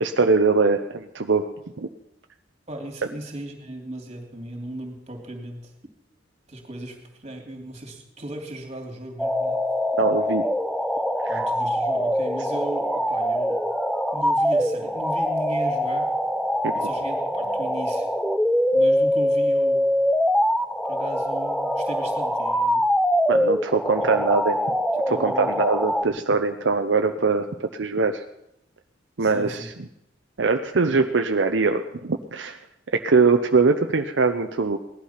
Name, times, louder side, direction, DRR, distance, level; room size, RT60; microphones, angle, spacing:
voice 1, 0.0-1.5 1.8-1.9 10.0-10.4 11.2-11.4 16.6-16.7 23.3-24.7 25.1-27.5 27.7-28.2 29.2-29.7 30.4-32.6 32.9-34.8, right 4 dB, 80° right, 6 dB, 0.7 m, -22 dB
voice 2, 2.7-5.7 6.5-9.6 11.3-13.6 14.1-16.1 16.7-18.1 18.7-19.9 20.9-22.8 24.1-24.3 25.1-25.5 29.2-29.7, right 1 dB, 35° right, 2 dB, 2.9 m, -36 dB
sound 1, 9.2-26.1, equal, ahead, 0.6 m, -23 dB
18.0 x 11.5 x 5.8 m, 0.80 s
head